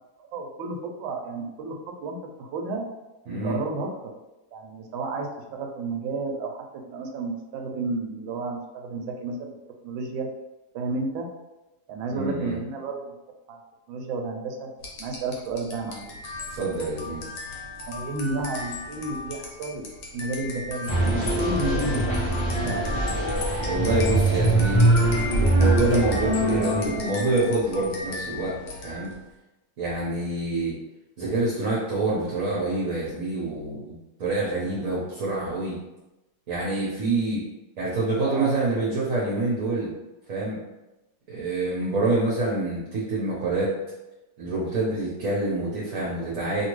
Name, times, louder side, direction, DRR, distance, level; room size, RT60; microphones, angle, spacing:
voice 1, 0.2-2.9 3.3-3.9 4.5-9.6 9.8-10.3 10.7-11.3 11.9-13.1 13.5-13.6 13.9-14.7 15.0-16.1 17.9-19.9 20.1-22.2 22.5-22.9 38.2-38.8, right 3 dB, 90° right, 2 dB, 1.3 m, -32 dB
voice 2, 3.3-3.6 12.1-12.6 16.5-17.3 23.6-24.9 25.5-28.6 28.8-29.1 29.8-30.8 31.2-35.8 36.5-37.4 37.8-39.9 40.3-40.6 41.3-43.7 44.4-46.7, right 2 dB, 55° right, -6 dB, 1.0 m, -26 dB
sound 1, 14.8-29.2, left 2 dB, 65° left, 1.2 m, -36 dB
sound 2, 20.9-27.1, right 1 dB, 35° left, 0.6 m, -23 dB
2.9 x 2.8 x 3.0 m, 1.0 s
omnidirectional pair, 2.1 m